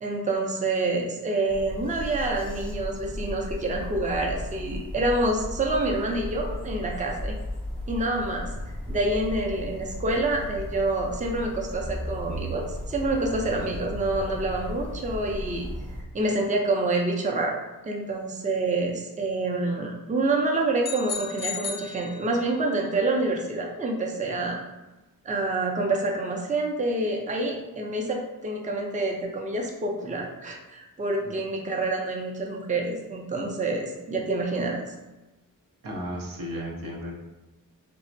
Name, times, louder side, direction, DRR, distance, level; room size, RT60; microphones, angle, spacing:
voice 1, 0.0-7.3 7.9-15.7 16.1-17.6 17.9-24.6 25.2-34.8, right 2 dB, 25° right, 0 dB, 0.5 m, -27 dB
sound 1, 1.5-16.0, left 1 dB, 5° left, 0.8 m, -35 dB
sound 2, 20.8-22.7, left 6 dB, 30° left, 0.5 m, -35 dB
voice 2, 35.8-37.2, equal, 80° right, -1 dB, 0.6 m, -34 dB
3.4 x 2.0 x 2.5 m, 1.1 s
cardioid pair, 55°, 34 cm